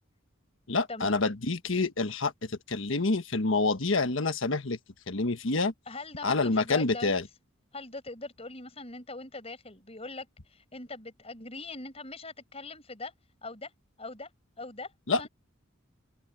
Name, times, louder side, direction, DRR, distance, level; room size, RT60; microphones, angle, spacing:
voice 1, 0.7-4.8 5.1-5.7 6.2-7.3 15.1-15.3, left 3 dB, 70° left, 1.3 m, -27 dB
voice 2, 5.9-7.2 7.7-13.1 13.4-13.7 14.0-14.3 14.6-14.9 15.2-15.3, left 3 dB, 30° left, 6.3 m, -41 dB
head